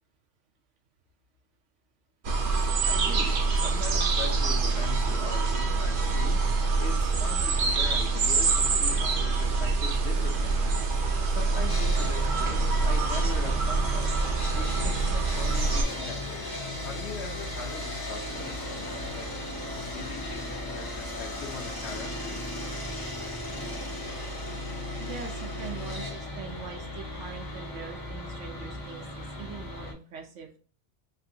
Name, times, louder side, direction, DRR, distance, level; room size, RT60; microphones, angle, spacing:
sound 1, 2.2-15.8, right 4 dB, 55° right, 0.6 m, -25 dB
voice 1, 2.8-10.9 11.3-14.1 14.5-16.5 16.8-19.3 19.7-22.4, left 5 dB, 65° left, 1 dB, 1.0 m, -41 dB
Sawing, 11.7-29.9, left 1 dB, 30° left, 0.4 m, -36 dB
voice 2, 25.0-30.6, right 6 dB, 80° right, 3 dB, 1.0 m, -42 dB
3.1 x 2.5 x 2.7 m, 0.39 s
omnidirectional pair, 1.2 m